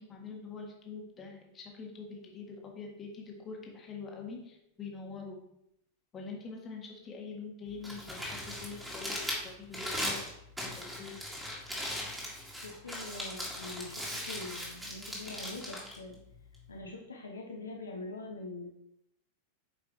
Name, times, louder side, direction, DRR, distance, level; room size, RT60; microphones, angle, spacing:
voice 1, 0.0-5.4 6.1-9.2 9.4-10.2 10.8-11.2, left 4 dB, 25° left, 0 dB, 1.7 m, -44 dB
Crumpling crinkling, 7.7-16.8, left 1 dB, 5° right, 2.2 m, -39 dB
voice 2, 12.6-16.2 16.7-18.7, left 2 dB, 75° left, 0 dB, 1.0 m, -43 dB
8.8 x 5.0 x 3.1 m, 0.80 s
figure-of-eight pair, 90°, 0 cm